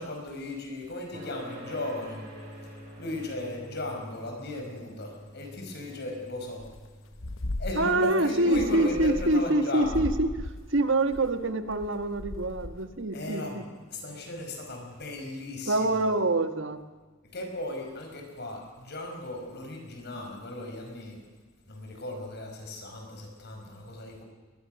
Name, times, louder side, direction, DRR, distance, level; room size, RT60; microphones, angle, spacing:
voice 1, 0.0-2.2 2.6-2.7 3.0-6.6 7.6-10.0 13.1-16.0 17.3-21.2 21.7-24.2, left 2 dB, 55° left, 3 dB, 5.2 m, -36 dB
sound 1, 1.1-16.0, equal, 45° right, 6.3 m, -50 dB
sound 2, 6.6-6.9 7.1-8.1 8.4-9.6 9.8-13.0, left 1 dB, 70° left, 1.0 m, -37 dB
voice 2, 7.7-13.6 15.6-16.8, right 2 dB, 65° right, 9 dB, 1.6 m, -26 dB
23.0 x 20.5 x 6.5 m, 1.3 s
head